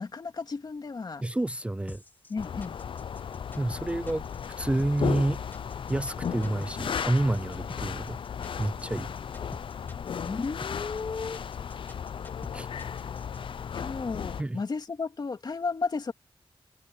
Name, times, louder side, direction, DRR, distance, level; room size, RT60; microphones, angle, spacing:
voice 1, 0.0-1.2 2.3-2.7 10.3-11.4 13.7-16.1, left 4 dB, 45° left, 2.6 m, -33 dB
voice 2, 1.2-2.0 3.6-4.2 4.6-5.4 5.9-8.2 8.6-9.1 12.5-12.7 14.4-14.6, right 1 dB, 10° right, 0.5 m, -28 dB
sound 1, 1.9-13.4, left 2 dB, 20° left, 2.5 m, -47 dB
sound 2, 2.4-14.4, left 7 dB, 65° left, 0.6 m, -35 dB
wide cardioid pair, 100°, 9 cm